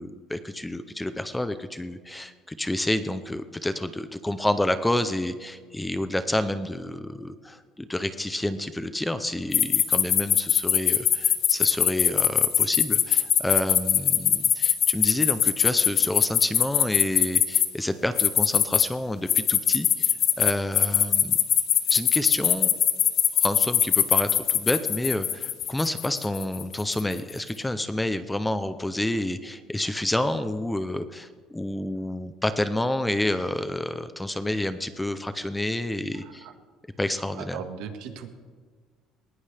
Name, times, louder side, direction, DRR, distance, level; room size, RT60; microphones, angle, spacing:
voice 1, 0.0-21.4 21.9-22.7 23.4-36.5 37.0-37.6, left 1 dB, 5° left, 11 dB, 0.5 m, -29 dB
sound 1, 9.5-17.7 18.2-18.8 19.3-27.1, left 10 dB, 40° left, 0.9 m, -21 dB
voice 2, 36.2-36.5 37.4-38.3, right 7 dB, 75° right, 6 dB, 1.7 m, -38 dB
20.5 x 19.0 x 3.4 m, 1.5 s
cardioid pair, 175°, 0 cm